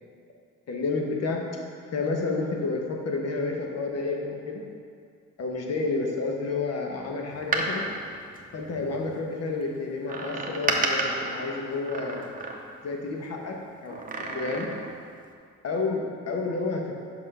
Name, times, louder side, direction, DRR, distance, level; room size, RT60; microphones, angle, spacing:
voice 1, 0.7-1.4 1.9-4.6 5.4-7.9 8.5-12.3 12.8-13.5 13.8-14.0 14.3-14.7 15.6-16.8, left 3 dB, 55° left, 1 dB, 1.3 m, -30 dB
Door, 7.3-9.1 10.1-12.9 13.9-15.0 15.3-15.4, right 2 dB, 30° right, 0.9 m, -31 dB
5.9 x 5.7 x 5.5 m, 2.2 s
cardioid pair, 90°, 30 cm